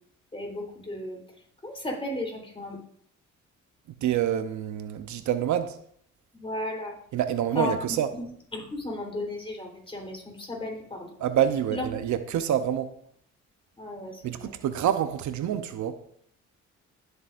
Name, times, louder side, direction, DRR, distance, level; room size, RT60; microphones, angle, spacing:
voice 1, 0.3-1.2 1.6-2.8 6.3-7.0 7.5-7.8 8.1-8.3 8.5-11.2 11.7-11.8 13.8-14.5, left 1 dB, 20° left, 3.7 m, -34 dB
voice 2, 4.0-5.8 7.1-8.1 11.2-12.9 14.2-16.1, right 10 dB, 70° right, 0.8 m, -27 dB
20.0 x 8.0 x 2.6 m
cardioid pair, 90°, 30 cm